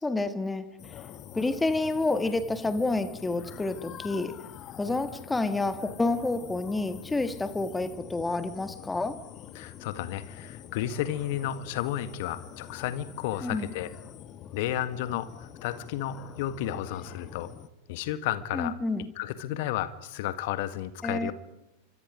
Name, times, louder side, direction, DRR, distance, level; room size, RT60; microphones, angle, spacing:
voice 1, 0.0-1.0 1.3-4.5 4.8-9.2 13.4-13.7 18.5-19.1 21.0-21.3, left 2 dB, 10° left, 1.7 m, -29 dB
sound 1, 0.8-17.7, left 10 dB, 35° left, 1.5 m, -46 dB
voice 2, 9.5-13.9 14.5-17.5 17.9-18.8 19.2-21.3, left 12 dB, 50° left, 1.7 m, -32 dB
29.5 x 25.5 x 5.1 m
figure-of-eight pair, 90°, 0 cm